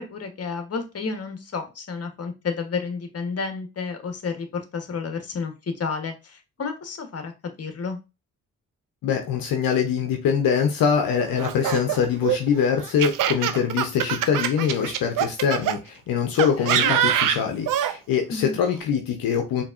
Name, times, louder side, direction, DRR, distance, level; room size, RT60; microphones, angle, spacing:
voice 1, 0.0-7.3 7.6-8.0 16.6-16.9 18.3-18.6, left 5 dB, 45° left, 6 dB, 1.1 m, -31 dB
voice 2, 9.0-19.6, left 7 dB, 75° left, 4 dB, 0.7 m, -23 dB
Laughter, 11.4-15.8 16.4-17.9, right 10 dB, 65° right, 0.5 m, -24 dB
4.6 x 2.9 x 2.5 m, 0.27 s
supercardioid pair, 45°, 35 cm